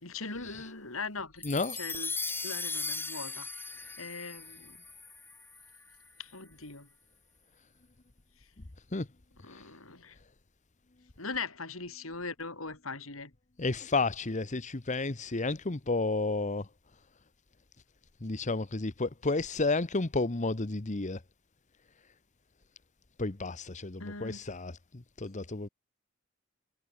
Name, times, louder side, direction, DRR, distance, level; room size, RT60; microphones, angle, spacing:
voice 1, 0.0-1.4 1.7-2.1 2.4-3.5 4.0-4.8 6.2-6.9 9.4-10.2 11.2-13.3 24.0-24.4, left 4 dB, 90° left, 5.8 m, -40 dB
voice 2, 1.4-1.8 8.9-9.1 13.6-16.6 18.2-21.2 23.2-24.7 25.2-25.7, left 3 dB, 35° left, 1.1 m, -31 dB
sound 1, 1.4-5.9, left 3 dB, 10° left, 5.0 m, -38 dB
head